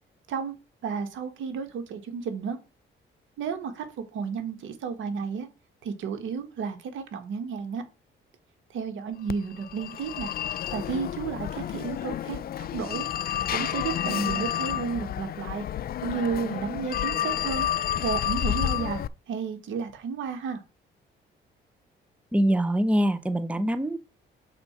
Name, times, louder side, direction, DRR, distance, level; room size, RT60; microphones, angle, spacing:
voice 1, 0.8-2.6 3.4-5.5 5.8-7.8 8.7-10.3 10.7-13.1 13.5-15.6 16.0-17.7 18.0-19.0 19.3-20.6, right 6 dB, 80° right, 1.7 m, -32 dB
Telephone, 9.3-19.1, left 11 dB, 50° left, 0.4 m, -30 dB
voice 2, 22.3-24.0, right 1 dB, 5° right, 0.7 m, -24 dB
6.8 x 4.2 x 5.8 m
cardioid pair, 90°, 20 cm